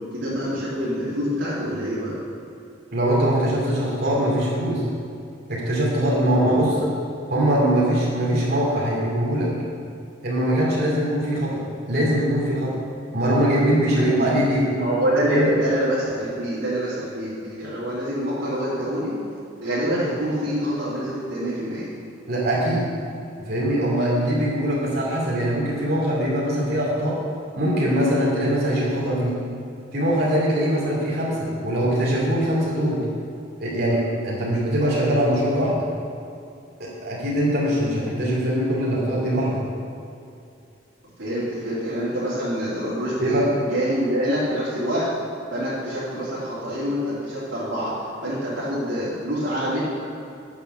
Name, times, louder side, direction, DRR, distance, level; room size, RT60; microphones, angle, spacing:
voice 1, 0.1-2.2 6.4-6.6 14.0-14.3 14.7-19.1 19.6-21.9 41.2-45.1 45.5-49.8, equal, 85° right, -11 dB, 2.9 m, -26 dB
voice 2, 2.9-4.8 5.5-6.9 7.3-9.5 10.2-12.8 13.1-14.7 15.3-15.5 22.3-22.9 23.4-27.2 27.5-29.4 29.9-33.1 33.6-35.9 36.8-39.6 43.2-43.5, right 1 dB, 55° right, -6 dB, 2.7 m, -22 dB
9.4 x 6.9 x 6.7 m, 2.6 s
head